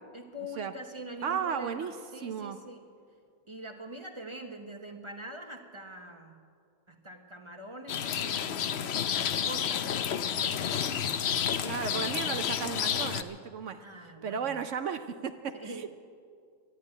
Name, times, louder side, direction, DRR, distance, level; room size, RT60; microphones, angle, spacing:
voice 1, 0.1-2.8 3.5-6.4 6.9-10.9 13.8-14.6 15.5-15.9, equal, 20° right, 4 dB, 0.9 m, -44 dB
voice 2, 1.2-1.9 2.2-2.6 11.6-13.8 14.2-15.9, right 7 dB, 60° right, 9 dB, 0.8 m, -34 dB
Rain, 7.9-13.2, left 8 dB, 65° left, 0.6 m, -30 dB
12.5 x 11.0 x 9.6 m, 2.3 s
omnidirectional pair, 1.7 m